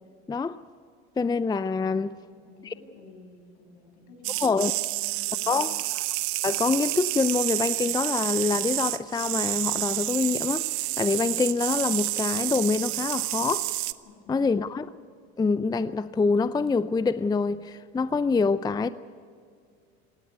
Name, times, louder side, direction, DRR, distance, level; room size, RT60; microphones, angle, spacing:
voice 1, 0.3-0.6 1.2-2.1 2.7-2.8 4.4-4.7 5.5-5.7 6.4-13.7 14.3-14.9 15.4-18.9, left 4 dB, 15° left, 0.5 m, -25 dB
voice 2, 1.8-5.9 14.0-14.6, left 4 dB, 70° left, 6.9 m, -50 dB
sound 1, 4.2-13.9, right 22 dB, 75° right, 0.7 m, -29 dB
18.0 x 17.5 x 9.6 m
hypercardioid pair, 85°, 32 cm